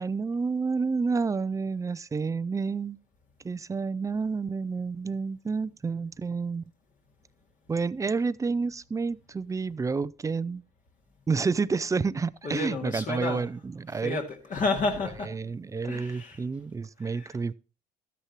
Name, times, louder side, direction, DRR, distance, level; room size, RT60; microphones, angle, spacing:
voice 1, 0.0-3.0 3.4-6.6 7.7-10.6 11.3-14.2 15.3-17.5, right 4 dB, 20° right, 0.4 m, -29 dB
voice 2, 12.4-13.5 13.9-15.3 15.9-16.4 17.0-17.4, left 3 dB, 50° left, 2.3 m, -31 dB
13.0 x 9.8 x 3.0 m
cardioid pair, 110°, 17 cm